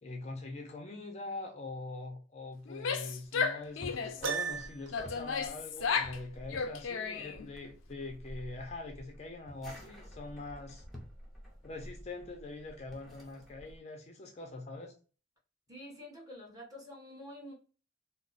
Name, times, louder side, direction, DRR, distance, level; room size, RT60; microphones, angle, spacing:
voice 1, 0.0-10.8 11.6-14.9, left 2 dB, 35° left, 3 dB, 0.5 m, -43 dB
Female speech woman speaking / Yell, 2.7-4.3 4.9-6.2 6.5-7.5, left 5 dB, 90° left, 0.4 m, -34 dB
sound 1, 3.6-13.8, equal, ahead, 0.7 m, -51 dB
Piano, 4.2-5.1, right 5 dB, 75° right, 0.6 m, -35 dB
voice 2, 15.7-17.5, left 1 dB, 20° right, -2 dB, 1.2 m, -48 dB
2.9 x 2.0 x 3.9 m, 0.37 s
head